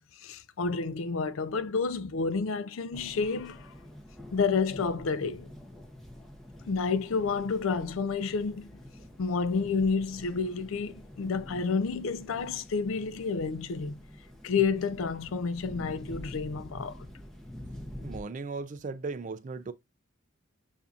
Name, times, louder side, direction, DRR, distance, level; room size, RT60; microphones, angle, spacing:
voice 1, 0.2-3.7 4.3-5.5 6.7-8.7 9.2-14.0 14.4-17.1, left 5 dB, 70° left, 0.4 m, -30 dB
sound 1, 2.9-18.2, equal, ahead, 0.6 m, -46 dB
voice 2, 18.0-19.7, right 4 dB, 35° right, 0.3 m, -37 dB
6.9 x 2.6 x 2.4 m
head